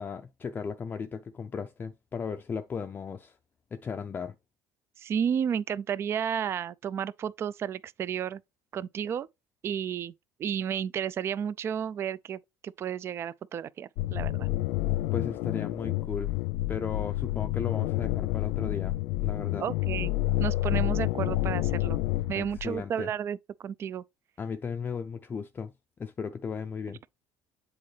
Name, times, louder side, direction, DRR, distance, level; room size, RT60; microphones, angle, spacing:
voice 1, 0.0-3.4 3.7-4.3 15.1-16.3 16.7-19.0 19.2-19.7 22.3-23.1 24.4-25.7 26.0-27.0, left 6 dB, 25° left, 0.4 m, -36 dB
voice 2, 5.0-8.4 8.7-9.3 9.6-10.1 10.4-14.5 19.6-20.1 20.4-22.0 22.3-24.0, right 8 dB, 35° right, 0.3 m, -32 dB
sound 1, 14.0-22.8, left 19 dB, 85° left, 0.4 m, -29 dB
7.7 x 4.1 x 3.2 m
cardioid pair, 130°, 7 cm